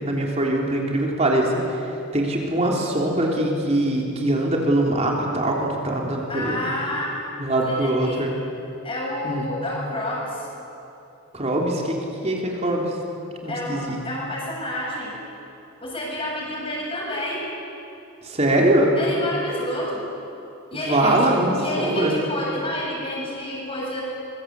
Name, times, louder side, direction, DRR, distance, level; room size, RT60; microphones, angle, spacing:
voice 1, 0.0-1.5 2.1-6.6 7.4-8.3 9.2-9.5 11.3-12.0 12.2-12.9 13.4-14.0 18.3-18.9 20.7-22.1, right 1 dB, 30° right, -1 dB, 3.6 m, -22 dB
voice 2, 6.3-7.1 7.5-8.3 8.8-10.5 13.5-15.2 15.8-17.5 19.0-20.1 20.7-24.0, left 1 dB, 25° left, -3 dB, 8.0 m, -29 dB
25.0 x 22.5 x 8.4 m, 2.8 s
head